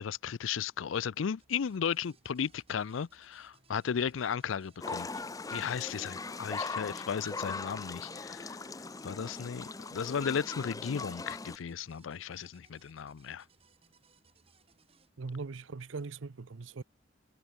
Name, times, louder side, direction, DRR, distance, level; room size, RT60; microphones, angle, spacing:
voice 1, 0.0-5.1 5.5-8.6 9.0-13.4, left 7 dB, 90° left, 0.5 m, -35 dB
sound 1, 1.4-15.1, right 4 dB, 30° right, 2.6 m, -67 dB
sound 2, 4.8-11.6, left 3 dB, 20° left, 0.6 m, -40 dB
voice 2, 15.2-16.8, right 4 dB, 80° right, 0.7 m, -40 dB
head